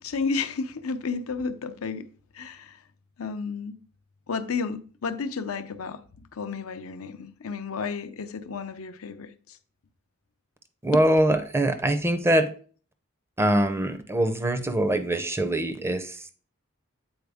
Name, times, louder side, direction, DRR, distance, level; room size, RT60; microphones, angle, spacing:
voice 1, 0.0-2.1 2.3-2.8 3.2-3.8 4.3-9.6 10.9-11.1, left 5 dB, 75° left, 0.6 m, -32 dB
voice 2, 10.8-12.5 13.4-16.2, right 1 dB, 10° right, 0.5 m, -23 dB
7.9 x 4.2 x 3.5 m
head